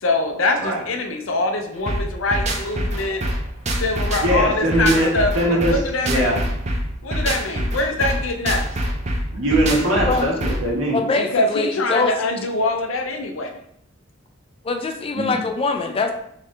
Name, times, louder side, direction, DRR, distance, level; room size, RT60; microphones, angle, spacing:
voice 1, 0.0-3.2 3.8-6.4 7.0-8.7 11.2-13.6, left 2 dB, 75° left, 5 dB, 0.6 m, -24 dB
sound 1, 1.9-10.7, right 1 dB, 35° right, 0.6 m, -25 dB
voice 2, 4.2-5.1 5.3-5.7 6.0-6.4 9.3-11.0 15.1-15.4, right 1 dB, 85° right, -2 dB, 1.3 m, -20 dB
voice 3, 10.9-12.1 14.6-16.1, left 3 dB, 30° left, 5 dB, 0.4 m, -23 dB
3.9 x 3.2 x 3.1 m, 0.71 s
head